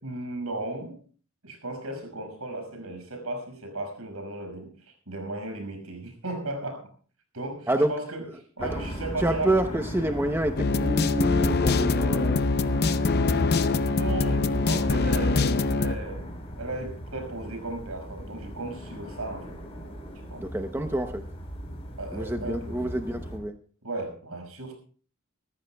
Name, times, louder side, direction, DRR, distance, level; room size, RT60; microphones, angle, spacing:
voice 1, 0.0-1.0 1.4-6.9 7.3-8.2 8.6-9.5 13.9-19.6 20.1-20.5 22.0-22.8 23.8-24.7, right 2 dB, 85° right, 4 dB, 5.6 m, -35 dB
sound 1, 8.6-23.4, equal, 30° left, 4.5 m, -38 dB
voice 2, 9.2-12.4 20.4-21.2 22.1-23.5, right 1 dB, 10° right, 6 dB, 0.7 m, -28 dB
sound 2, 10.6-15.9, left 3 dB, 50° left, 0.6 m, -23 dB
25.0 x 14.5 x 2.3 m, 0.42 s
head